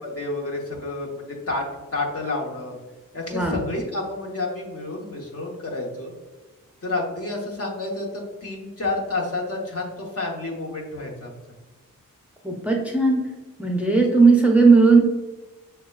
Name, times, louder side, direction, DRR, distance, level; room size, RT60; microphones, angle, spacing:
voice 1, 0.0-1.6 1.9-2.8 3.1-6.1 6.8-11.3, left 2 dB, 45° left, -1 dB, 1.2 m, -29 dB
voice 2, 3.3-3.6 12.4-13.2 13.6-15.0, right 4 dB, 5° right, 0 dB, 0.6 m, -16 dB
6.6 x 2.2 x 2.3 m, 1.2 s
cardioid pair, 70°, 34 cm